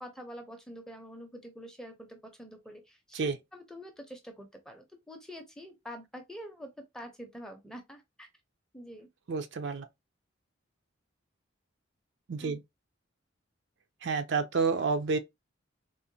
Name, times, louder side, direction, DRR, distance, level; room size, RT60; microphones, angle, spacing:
voice 1, 0.0-8.3 8.7-9.1 12.4-12.6, equal, 5° left, 0.5 m, -46 dB
voice 2, 9.3-9.9 12.3-12.6 14.0-15.2, right 4 dB, 60° right, 0.4 m, -29 dB
3.7 x 2.0 x 2.7 m
head